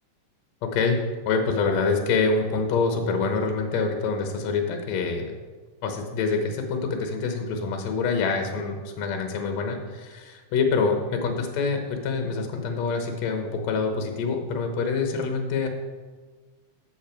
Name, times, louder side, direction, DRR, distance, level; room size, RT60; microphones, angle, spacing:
voice 1, 0.6-5.4 5.8-15.7, left 4 dB, 65° left, 4 dB, 2.2 m, -26 dB
12.0 x 7.6 x 4.5 m, 1.4 s
omnidirectional pair, 3.6 m